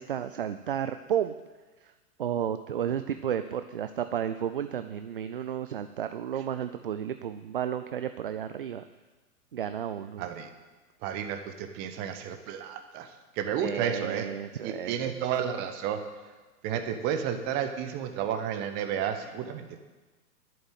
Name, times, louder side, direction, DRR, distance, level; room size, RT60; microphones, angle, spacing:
voice 1, 0.0-1.3 2.2-8.8 9.5-10.2 13.6-14.9, right 9 dB, 40° right, 10 dB, 0.4 m, -32 dB
voice 2, 10.2-10.5 11.0-14.3 14.6-16.0 16.6-19.7, right 8 dB, 20° right, 7 dB, 1.0 m, -32 dB
11.0 x 8.8 x 9.1 m, 1.3 s
figure-of-eight pair, 115°, 46 cm